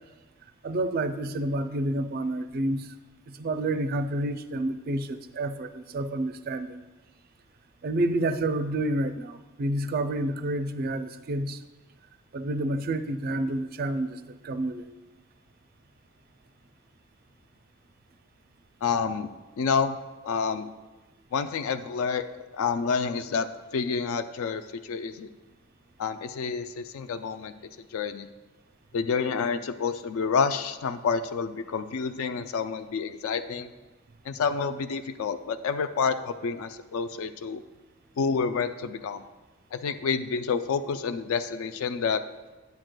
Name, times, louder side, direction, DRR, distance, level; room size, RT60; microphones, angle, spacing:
voice 1, 0.6-2.9 3.3-6.8 7.8-11.6 12.3-14.9, right 1 dB, 45° right, 10 dB, 0.4 m, -29 dB
voice 2, 18.8-19.3 19.6-20.0 20.2-20.7 21.3-22.3 22.5-25.3 26.0-27.5 27.9-28.3 28.9-33.7 34.3-37.6 38.2-39.2 39.7-42.2, left 5 dB, 75° left, 9 dB, 0.4 m, -28 dB
10.5 x 7.6 x 2.2 m, 1.2 s
head